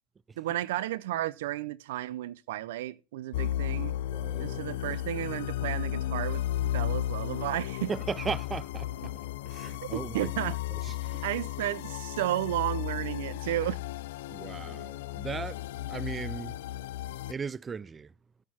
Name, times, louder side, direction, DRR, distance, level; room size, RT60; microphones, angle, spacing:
voice 1, 0.4-3.9 4.4-6.4 6.7-7.9 9.9-10.6 11.2-13.8, right 14 dB, 80° right, 0.5 m, -33 dB
sound 1, 3.3-17.3, left 13 dB, 80° left, 0.4 m, -34 dB
voice 2, 4.1-5.0 7.9-10.3 10.7-11.2 14.3-16.6 17.3-18.1, right 5 dB, 25° right, 0.4 m, -38 dB
9.5 x 6.6 x 4.3 m
supercardioid pair, 105°, 0 cm